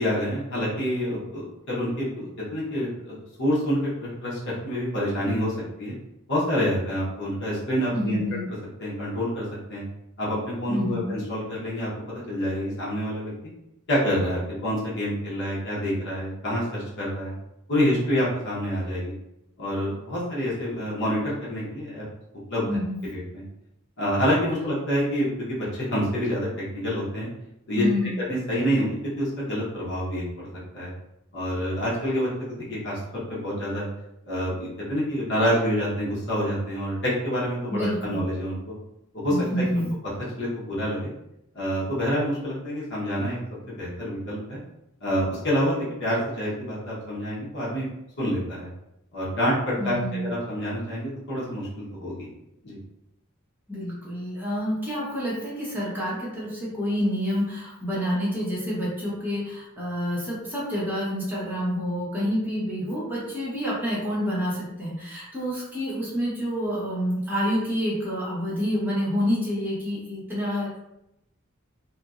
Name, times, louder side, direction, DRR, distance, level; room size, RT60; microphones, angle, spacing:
voice 1, 0.0-5.9 6.3-8.2 8.8-9.8 10.2-13.3 13.9-17.3 17.7-19.1 19.6-22.0 22.5-22.8 23.0-23.4 24.0-27.3 27.7-27.8 28.3-30.5 30.7-30.9 31.3-33.0 33.3-33.8 34.3-38.7 39.1-39.6 40.4-41.1 41.5-43.4 43.8-44.6 45.0-47.9 48.2-48.7 49.1-52.3 52.6-52.8, equal, 60° left, -7 dB, 1.0 m, -27 dB
voice 2, 7.9-8.5 10.7-11.1 22.7-23.0 27.7-28.2 37.7-38.2 39.3-39.9 49.8-50.3 53.7-70.8, equal, 10° right, -8 dB, 0.9 m, -28 dB
2.8 x 2.6 x 2.4 m, 0.85 s
head